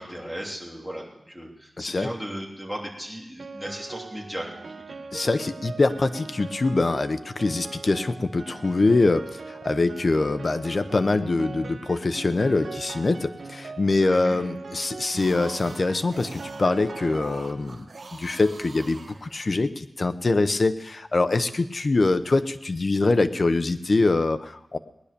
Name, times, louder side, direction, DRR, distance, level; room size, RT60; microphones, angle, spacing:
voice 1, 0.0-5.1 14.0-14.4, equal, ahead, -2 dB, 3.2 m, -36 dB
voice 2, 1.8-2.1 5.1-17.9 18.2-24.8, left 3 dB, 45° left, 10 dB, 0.8 m, -24 dB
Piano, 3.4-17.8, right 4 dB, 80° right, 0.8 m, -40 dB
sound 1, 15.2-19.8, right 3 dB, 65° right, 1.5 m, -44 dB
19.5 x 10.5 x 6.8 m, 0.88 s
wide cardioid pair, 100°, 0 cm